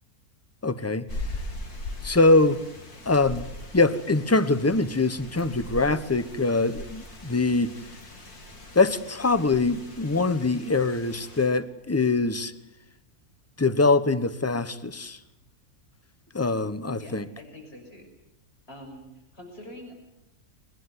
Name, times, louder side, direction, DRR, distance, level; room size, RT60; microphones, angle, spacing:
voice 1, 0.6-1.0 2.0-2.6 3.0-3.5 3.7-7.7 8.7-12.5 13.6-15.2 16.3-17.2, left 3 dB, 10° left, 13 dB, 0.9 m, -23 dB
sound 1, 1.1-11.5, left 1 dB, 85° left, 3.8 m, -40 dB
voice 2, 17.0-18.1 18.7-19.9, equal, 40° left, 2 dB, 6.6 m, -44 dB
22.0 x 21.0 x 9.6 m, 0.86 s
omnidirectional pair, 1.6 m